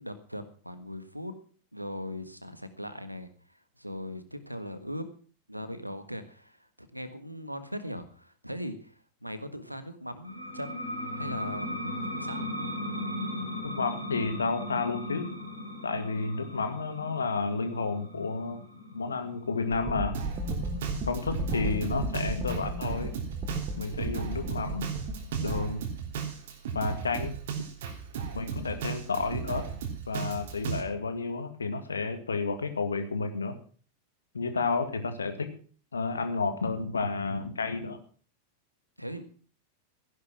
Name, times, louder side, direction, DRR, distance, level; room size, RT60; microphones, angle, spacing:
voice 1, 0.0-1.3 1.7-5.1 5.5-10.9 11.1-11.7 12.0-12.5 39.0-39.2, equal, 90° right, 12 dB, 1.6 m, -39 dB
sound 1, 10.2-21.5, left 1 dB, 90° left, 5.3 m, -37 dB
voice 2, 13.6-15.3 15.8-18.6 18.9-20.2 21.1-23.1 23.8-24.9 25.4-25.8 26.7-27.3 28.3-29.7 30.1-33.6 34.3-35.5 35.9-38.0, left 4 dB, 75° left, 9 dB, 2.2 m, -31 dB
sound 2, 19.7-25.7, right 1 dB, 30° right, 2.9 m, -35 dB
Drum kit, 20.1-30.8, right 7 dB, 55° right, 3.0 m, -36 dB
15.5 x 11.0 x 6.0 m, 0.41 s
figure-of-eight pair, 90°, 0 cm